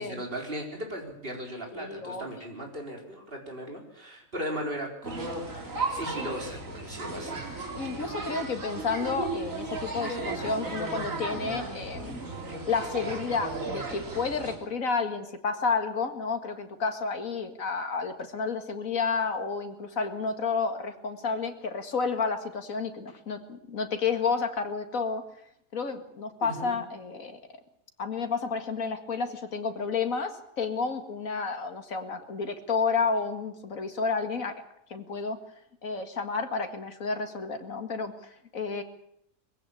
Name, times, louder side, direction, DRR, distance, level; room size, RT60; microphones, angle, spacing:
voice 1, 0.0-7.6 26.4-26.8, equal, 40° right, 1 dB, 4.6 m, -37 dB
voice 2, 1.7-2.3 7.8-12.2 12.7-25.2 25.7-27.4 28.0-34.6 34.9-35.4 35.8-38.8, left 4 dB, 70° left, 6 dB, 2.4 m, -31 dB
sound 1, 5.0-14.6, right 3 dB, 65° right, 3.8 m, -35 dB
21.5 x 16.0 x 8.5 m, 0.76 s
omnidirectional pair, 1.5 m